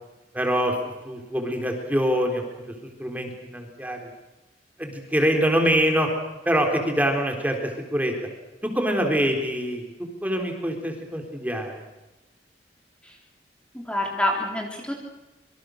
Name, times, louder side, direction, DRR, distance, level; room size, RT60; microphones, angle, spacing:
voice 1, 0.3-0.8 1.0-2.4 2.8-4.1 4.8-6.1 6.5-8.1 8.6-9.8 10.2-11.8, equal, 10° right, 3 dB, 3.9 m, -24 dB
voice 2, 13.7-15.0, left 1 dB, 5° left, 0 dB, 3.6 m, -27 dB
26.5 x 25.0 x 6.6 m, 1.1 s
head